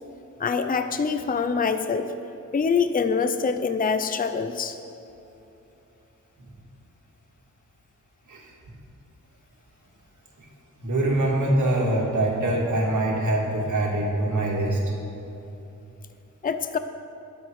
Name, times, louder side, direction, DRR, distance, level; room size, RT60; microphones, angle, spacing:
voice 1, 0.4-2.1 2.5-4.8 16.4-16.8, left 5 dB, 25° left, 9 dB, 0.5 m, -25 dB
voice 2, 10.8-14.8, right 1 dB, 65° right, -2 dB, 2.7 m, -24 dB
21.0 x 7.9 x 4.8 m, 2.9 s
wide cardioid pair, 155°, 32 cm